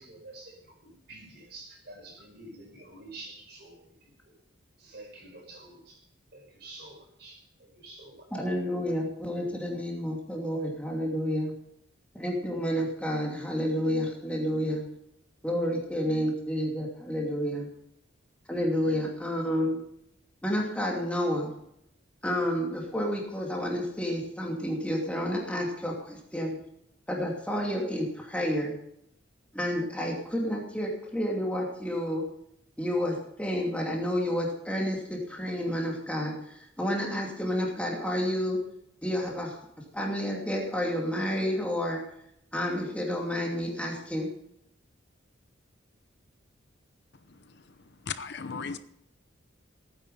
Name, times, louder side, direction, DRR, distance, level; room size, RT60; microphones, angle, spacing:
voice 1, 0.0-4.1 4.8-6.0 6.3-8.5, right 2 dB, 55° right, 5.4 m, -48 dB
voice 2, 8.3-11.5 12.1-14.8 15.4-17.7 18.5-19.8 20.4-21.5 22.2-26.5 27.1-28.7 29.5-32.2 32.8-38.6 39.0-39.6 39.9-42.0 42.5-44.3, equal, 5° left, 2.6 m, -30 dB
voice 3, 47.1-48.8, left 5 dB, 55° left, 0.8 m, -38 dB
16.5 x 9.8 x 5.5 m
head